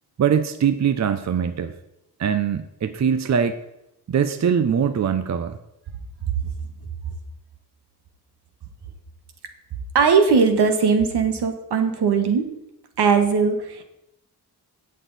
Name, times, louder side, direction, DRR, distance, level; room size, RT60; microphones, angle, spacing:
voice 1, 0.2-1.7 2.2-3.6 4.1-5.6, right 7 dB, 45° right, 10 dB, 0.7 m, -22 dB
voice 2, 9.9-12.4 13.0-13.8, right 5 dB, 85° right, 6 dB, 1.6 m, -19 dB
17.0 x 6.6 x 4.1 m, 0.85 s
cardioid pair, 110°, 39 cm